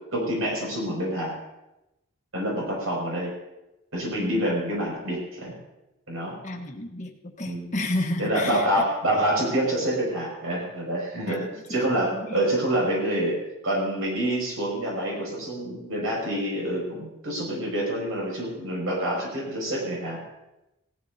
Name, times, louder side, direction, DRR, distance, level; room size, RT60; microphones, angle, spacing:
voice 1, 0.1-1.3 2.3-3.3 3.9-5.6 6.1-6.4 7.4-7.7 8.2-11.4 11.7-13.4 13.6-20.2, right 1 dB, 75° right, -4 dB, 6.3 m, -27 dB
voice 2, 6.4-8.7 11.3-11.9 12.1-12.4, left 1 dB, 35° left, 2 dB, 1.3 m, -32 dB
18.5 x 15.0 x 2.8 m, 0.95 s
head